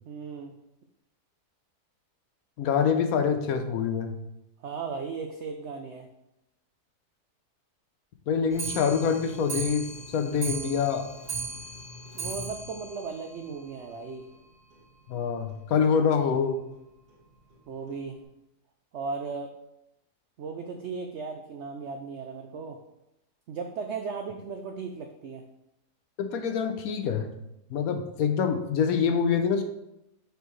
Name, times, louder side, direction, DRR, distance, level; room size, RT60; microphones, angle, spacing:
voice 1, 0.1-0.5 4.6-6.1 12.1-14.3 17.7-18.2 18.9-19.6 20.4-22.8 23.5-25.4, right 5 dB, 80° right, 5 dB, 0.6 m, -36 dB
voice 2, 2.6-4.2 8.3-9.9 10.1-11.1 15.1-16.6 26.2-27.3 27.7-29.6, left 6 dB, 70° left, 7 dB, 1.0 m, -25 dB
Clock, 8.5-14.0 14.3-14.4 14.7-14.8 15.1-15.2 15.5-15.6 16.3-16.4 17.1-17.2 17.9-18.0, right 4 dB, 40° right, 1.7 m, -37 dB
6.7 x 4.5 x 3.1 m, 0.85 s
omnidirectional pair, 1.7 m